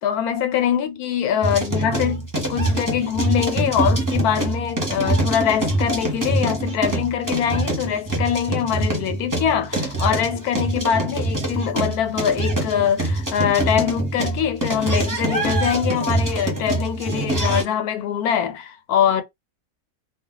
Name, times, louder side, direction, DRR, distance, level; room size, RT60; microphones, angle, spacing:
voice 1, 0.0-19.2, left 9 dB, 85° left, 1.2 m, -23 dB
sound 1, 1.4-17.6, right 2 dB, 15° right, 0.8 m, -24 dB
2.4 x 2.2 x 3.8 m
omnidirectional pair, 1.6 m